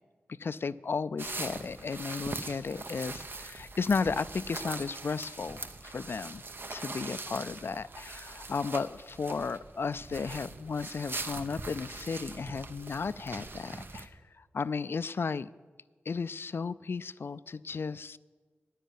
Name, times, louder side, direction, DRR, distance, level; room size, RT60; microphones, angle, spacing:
voice 1, 0.3-6.4 6.7-15.5 16.1-18.2, left 5 dB, 60° left, 17 dB, 0.4 m, -34 dB
sound 1, 1.2-14.1, right 3 dB, 55° right, 0.9 m, -42 dB
10.0 x 9.2 x 9.3 m, 1.4 s
cardioid pair, 60°, 4 cm